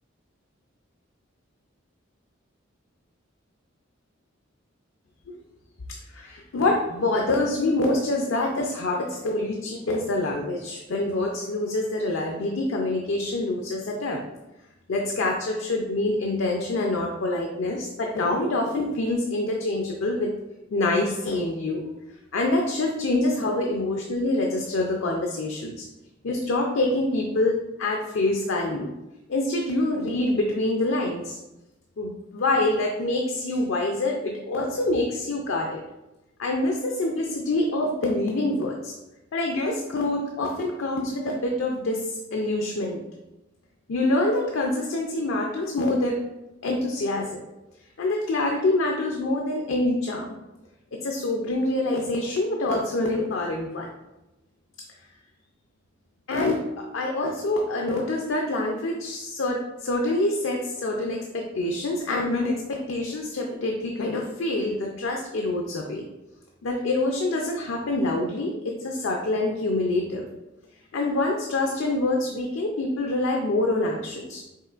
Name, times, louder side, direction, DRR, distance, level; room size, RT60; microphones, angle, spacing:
voice 1, 6.1-14.2 14.9-20.3 20.7-21.8 22.3-25.9 26.2-28.9 29.3-31.4 32.0-35.8 36.4-38.9 39.3-43.0 43.9-46.2 46.6-47.4 48.0-50.3 51.0-53.9 56.3-66.0 66.6-70.2 70.9-74.4, left 2 dB, 75° left, 1 dB, 0.5 m, -26 dB
5.5 x 3.6 x 2.5 m, 0.98 s
head